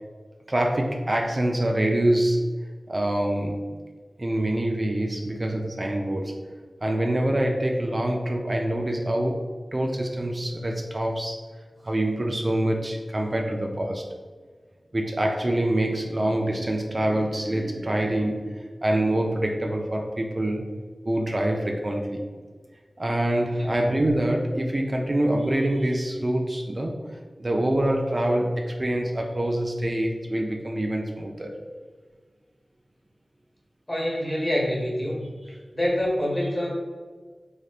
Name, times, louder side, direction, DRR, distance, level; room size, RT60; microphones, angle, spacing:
voice 1, 0.5-2.5 2.9-3.6 4.2-6.4 6.8-9.4 9.7-11.4 11.8-14.1 14.9-20.7 21.1-22.2 23.0-27.0 27.4-31.6, right 1 dB, 40° right, 1 dB, 0.3 m, -25 dB
voice 2, 33.9-35.3 35.7-36.7, left 1 dB, 30° left, -3 dB, 1.0 m, -26 dB
3.3 x 2.6 x 2.4 m, 1.5 s
wide cardioid pair, 45°, 0 cm